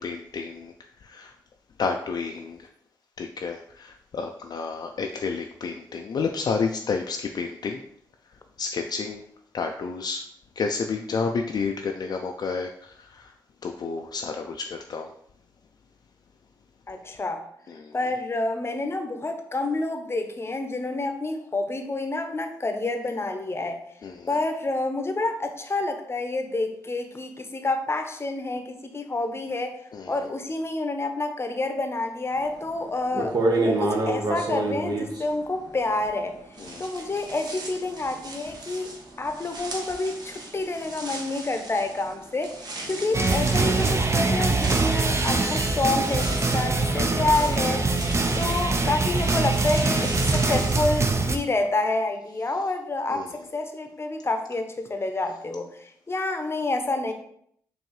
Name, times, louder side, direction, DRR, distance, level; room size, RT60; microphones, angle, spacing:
voice 1, 0.0-1.4 1.8-2.7 3.2-7.8 8.3-9.2 9.5-10.3 10.6-13.3 13.6-15.1 17.7-17.9 24.0-24.3 29.9-30.2 36.6-36.9 42.8-43.2 48.4-48.7 53.1-53.3, left 5 dB, 55° left, 3 dB, 0.3 m, -31 dB
voice 2, 16.9-17.4 17.9-23.8 24.3-29.8 30.1-36.4 36.8-38.9 39.2-48.1 48.3-57.1, left 2 dB, 30° left, 6 dB, 0.7 m, -28 dB
sound 1, 32.6-32.7 33.1-36.3 36.6-51.3, right 2 dB, 60° right, 1.0 m, -33 dB
sound 2, 43.1-51.4, right 3 dB, 35° right, 0.6 m, -23 dB
4.5 x 2.6 x 3.1 m, 0.69 s
supercardioid pair, 45°, 8 cm